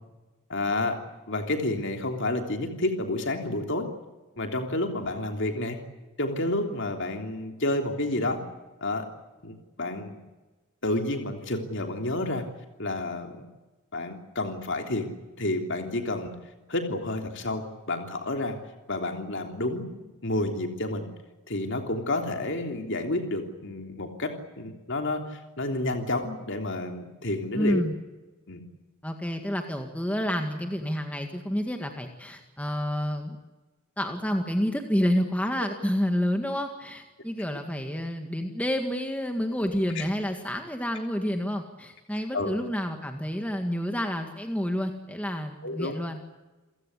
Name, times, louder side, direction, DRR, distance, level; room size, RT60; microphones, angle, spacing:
voice 1, 0.5-1.0 1.3-3.9 4.4-5.8 6.2-8.4 8.8-9.1 9.4-10.1 10.8-12.4 12.8-13.5 13.9-15.1 15.4-16.3 16.7-18.6 18.9-20.0 20.2-21.1 21.5-27.8 28.5-28.6 39.9-40.0 42.3-42.5 45.6-46.0, left 2 dB, 55° left, 5 dB, 3.3 m, -30 dB
voice 2, 27.5-27.9 29.0-33.4 34.0-46.2, equal, 5° left, 4 dB, 1.9 m, -29 dB
29.0 x 16.0 x 9.9 m, 1.2 s
head